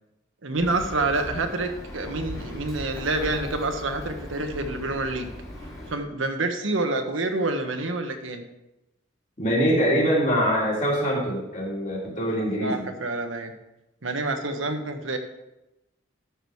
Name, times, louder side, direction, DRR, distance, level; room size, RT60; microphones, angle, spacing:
voice 1, 0.4-5.3 5.9-8.4 12.6-13.5 14.0-15.2, right 2 dB, 85° right, 5 dB, 1.3 m, -27 dB
Bird, 0.6-6.0, equal, 20° left, 2.3 m, -38 dB
voice 2, 9.4-12.9, equal, 40° left, -4 dB, 3.1 m, -23 dB
12.5 x 6.2 x 4.8 m, 0.94 s
head